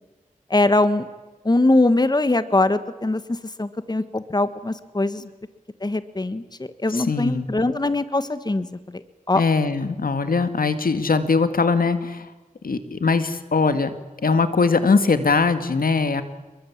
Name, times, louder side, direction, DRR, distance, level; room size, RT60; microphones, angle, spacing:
voice 1, 0.5-1.1 1.4-3.2 3.6-5.2 5.8-9.0 9.3-9.4, left 2 dB, 30° left, 12 dB, 1.4 m, -21 dB
voice 2, 6.9-7.5 9.3-12.3 12.6-13.9 14.2-16.2, left 4 dB, 80° left, 10 dB, 2.1 m, -21 dB
28.0 x 22.5 x 8.8 m, 1.2 s
wide cardioid pair, 65°, 15 cm